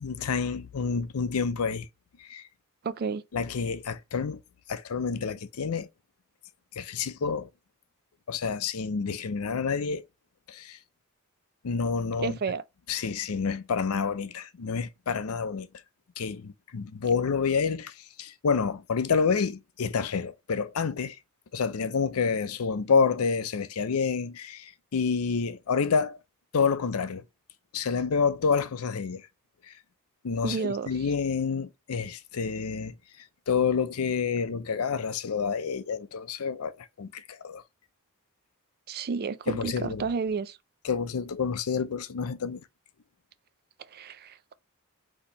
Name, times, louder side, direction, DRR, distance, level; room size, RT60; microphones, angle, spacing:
voice 1, 0.0-1.9 2.2-2.5 3.3-4.4 4.7-5.9 6.8-7.5 8.3-10.1 10.5-10.8 11.6-12.4 12.9-15.7 16.2-21.2 21.5-26.2 26.5-27.2 27.7-29.3 29.6-29.7 30.2-37.6 39.5-40.1 40.8-42.6, left 5 dB, 90° left, 0.5 m, -28 dB
voice 2, 2.8-3.2 12.2-12.6 30.4-30.9 38.9-40.6 43.9-44.5, right 5 dB, 45° right, 0.4 m, -31 dB
4.2 x 2.9 x 4.0 m
head